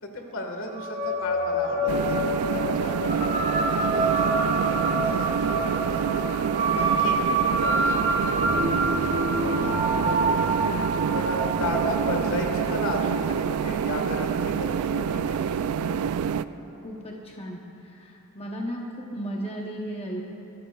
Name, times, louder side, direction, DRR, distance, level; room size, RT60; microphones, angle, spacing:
voice 1, 0.0-6.1 6.8-10.5 11.1-15.7, left 1 dB, 65° left, 2 dB, 1.6 m, -35 dB
sound 1, 0.7-15.4, right 2 dB, 30° right, 1.0 m, -27 dB
sound 2, 1.9-16.4, right 7 dB, 80° right, 0.3 m, -27 dB
voice 2, 6.6-7.1 16.8-17.6 17.9-20.3, equal, 25° left, -1 dB, 0.8 m, -35 dB
20.0 x 13.5 x 2.4 m, 2.9 s
head